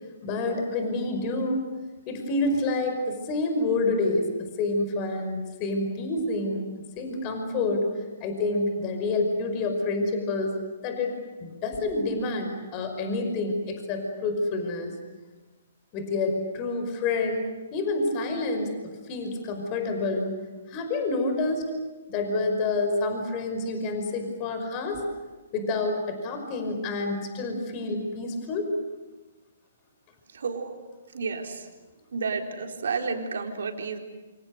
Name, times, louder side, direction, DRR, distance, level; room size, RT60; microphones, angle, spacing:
voice 1, 0.2-1.7 2.1-6.6 7.0-10.5 10.8-11.1 11.4-14.9 15.9-18.8 19.1-20.3 20.7-21.7 22.1-25.0 25.5-28.7, left 2 dB, 30° left, 5 dB, 5.6 m, -28 dB
voice 2, 30.3-30.8 31.1-31.7 32.1-34.0, right 4 dB, 65° right, 3 dB, 3.9 m, -31 dB
28.5 x 27.0 x 6.7 m, 1.2 s
figure-of-eight pair, 130°, 0 cm